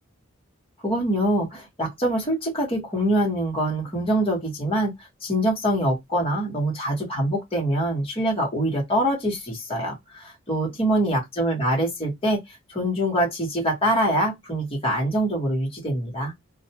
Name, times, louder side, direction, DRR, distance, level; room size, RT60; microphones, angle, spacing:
voice 1, 0.8-4.9 5.2-12.4 12.7-16.3, right 1 dB, 25° left, 1.2 m, -24 dB
2.5 x 2.2 x 2.8 m
head